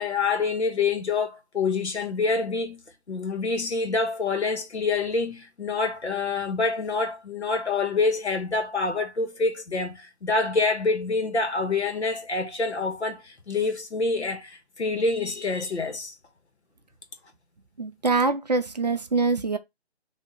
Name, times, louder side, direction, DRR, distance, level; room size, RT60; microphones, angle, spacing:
voice 1, 0.0-2.8 3.1-16.1, left 3 dB, 85° left, 1.4 m, -26 dB
voice 2, 17.8-19.6, right 3 dB, 40° right, 0.5 m, -24 dB
6.3 x 2.8 x 3.0 m
figure-of-eight pair, 165°, 32 cm